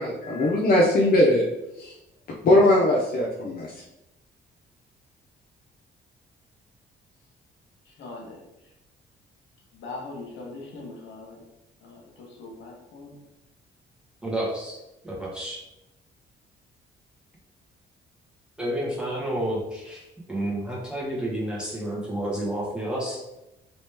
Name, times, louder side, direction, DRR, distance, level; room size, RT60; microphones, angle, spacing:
voice 1, 0.0-1.4 1.8-1.9 2.4-3.7, left 1 dB, 50° left, -3 dB, 0.7 m, -20 dB
voice 2, 7.8-8.4 9.7-11.4 11.8-13.2, left 3 dB, 70° left, -1 dB, 1.1 m, -41 dB
voice 3, 14.2-14.8 15.0-15.6 18.6-23.2, right 1 dB, 5° right, -5 dB, 1.4 m, -30 dB
3.0 x 2.9 x 3.4 m, 0.91 s
cardioid pair, 90°, 20 cm